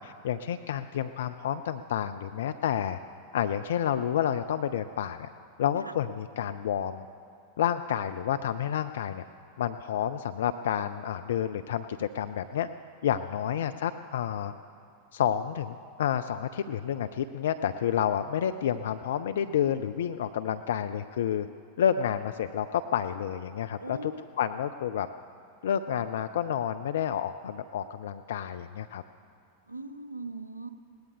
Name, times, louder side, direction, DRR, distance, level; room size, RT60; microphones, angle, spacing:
voice 1, 0.0-3.0 3.3-5.3 5.6-7.1 7.6-9.2 9.6-12.7 13.0-14.5 15.1-21.5 21.8-24.1 24.4-25.1 25.6-29.0, left 9 dB, 60° left, 10 dB, 0.4 m, -29 dB
voice 2, 23.8-24.2 29.7-30.7, right 2 dB, 85° right, 10 dB, 0.7 m, -40 dB
21.0 x 18.0 x 3.5 m, 2.3 s
figure-of-eight pair, 90°, 0 cm